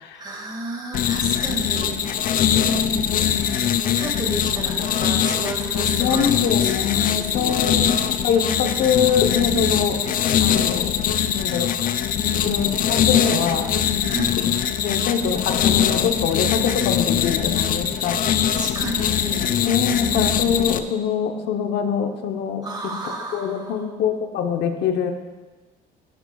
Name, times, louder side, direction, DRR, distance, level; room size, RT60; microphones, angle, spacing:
voice 1, 0.1-2.0 3.3-7.8 12.2-12.7 14.0-14.3 18.6-19.6 22.6-23.9, right 2 dB, 20° right, 1 dB, 2.0 m, -33 dB
sound 1, 0.9-20.8, left 9 dB, 45° left, 0.5 m, -22 dB
voice 2, 2.4-3.0 6.0-10.0 10.4-10.9 11.3-11.9 12.4-13.7 14.4-14.5 14.8-18.2 19.6-22.6 23.0-25.1, left 7 dB, 65° left, 4 dB, 0.9 m, -24 dB
14.0 x 8.0 x 2.4 m, 1.3 s
supercardioid pair, 100°, 19 cm